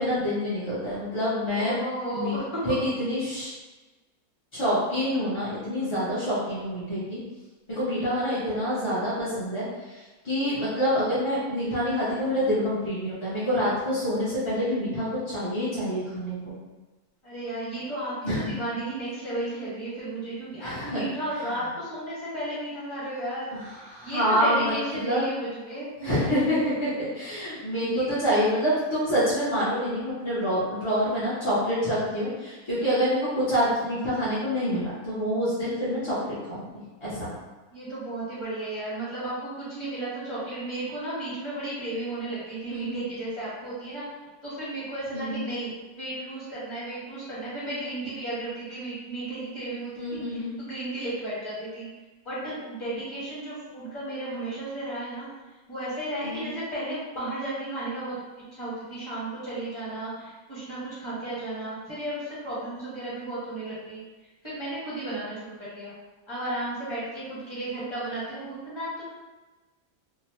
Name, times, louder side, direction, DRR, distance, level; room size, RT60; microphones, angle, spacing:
voice 1, 0.0-1.8 2.1-2.4 2.6-3.5 4.5-7.2 7.7-10.0 10.2-16.5 18.2-18.5 20.6-21.0 23.5-23.6 23.9-25.3 26.0-36.2 36.5-36.7 37.0-37.3 42.7-43.0 45.1-45.4 50.0-50.5 56.2-56.5, equal, 35° left, -11 dB, 0.4 m, -27 dB
voice 2, 1.6-2.6 17.2-25.9 27.8-28.1 32.8-33.0 37.7-44.0 44.4-51.9 52.2-55.3 55.7-58.1 58.5-64.0 64.4-65.9 66.3-69.0, right 1 dB, 20° left, -10 dB, 1.0 m, -34 dB
2.7 x 2.0 x 2.9 m, 1.2 s
omnidirectional pair, 1.6 m